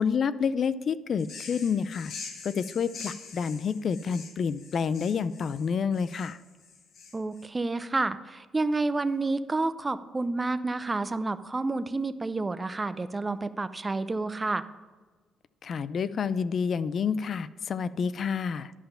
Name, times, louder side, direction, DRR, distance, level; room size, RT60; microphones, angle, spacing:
voice 1, 0.0-2.1 2.4-6.4 15.6-18.7, left 6 dB, 55° left, 16 dB, 0.4 m, -29 dB
sound 1, 1.2-7.5, left 5 dB, 70° left, 1.2 m, -44 dB
voice 2, 7.1-14.6, right 3 dB, 20° right, 12 dB, 0.5 m, -29 dB
11.0 x 5.7 x 5.6 m, 1.3 s
cardioid pair, 90°, 0 cm